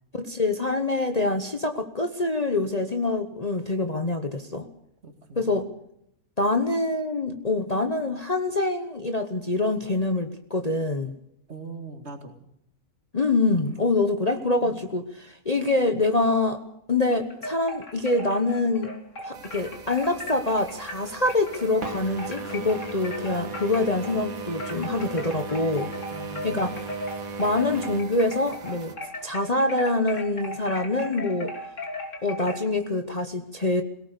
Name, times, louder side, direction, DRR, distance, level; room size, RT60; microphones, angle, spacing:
voice 1, 0.2-4.7 5.4-5.7 6.4-11.1 13.1-16.6 16.9-18.9 19.2-25.9 26.4-26.7 27.4-28.9 29.2-31.5 32.2-33.8, left 2 dB, 30° left, 6 dB, 1.0 m, -25 dB
voice 2, 5.0-5.7 11.5-12.4 14.6-14.8 26.1-26.9, right 3 dB, 50° right, 5 dB, 2.6 m, -41 dB
sound 1, 17.1-24.2 24.6-32.7, left 1 dB, 60° left, 3.1 m, -38 dB
sound 2, 19.3-28.9, right 5 dB, 75° right, 2.4 m, -37 dB
21.5 x 18.0 x 6.7 m, 0.75 s
omnidirectional pair, 1.5 m